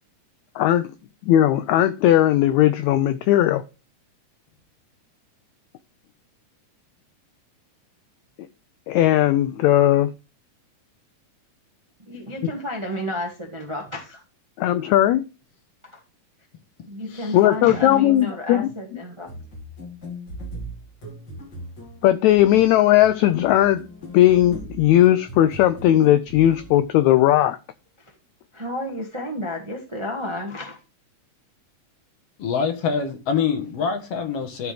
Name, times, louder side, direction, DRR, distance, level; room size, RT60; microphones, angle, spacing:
voice 1, 0.6-0.9 1.3-3.6 8.9-10.1 14.6-15.2 17.3-18.7 22.0-23.8 24.1-27.6, left 13 dB, 85° left, 1.6 m, -17 dB
voice 2, 12.1-14.2 15.9-16.0 16.9-19.3 28.5-30.8, left 1 dB, 40° right, 0.4 m, -31 dB
sound 1, 19.2-26.9, equal, 35° left, 2.8 m, -39 dB
voice 3, 32.4-34.7, left 6 dB, 60° left, 1.9 m, -25 dB
12.5 x 5.0 x 3.4 m
omnidirectional pair, 3.7 m